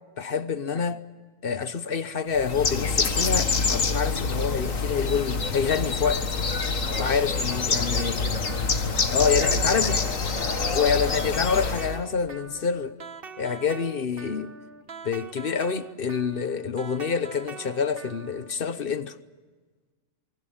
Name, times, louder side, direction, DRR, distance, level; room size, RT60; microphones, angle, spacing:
voice 1, 0.2-1.0 1.4-6.2 7.0-8.2 9.1-10.0 10.7-12.9 13.4-14.6 15.0-19.1, left 6 dB, 45° left, 1.1 m, -27 dB
Bird, 2.3-12.0, left 4 dB, 80° left, 2.1 m, -26 dB
voice 2, 6.8-7.2 7.7-10.2, right 5 dB, 85° right, 1.7 m, -41 dB
sound 1, 7.5-18.5, right 5 dB, 45° right, 1.6 m, -43 dB
27.5 x 24.5 x 7.3 m
omnidirectional pair, 1.4 m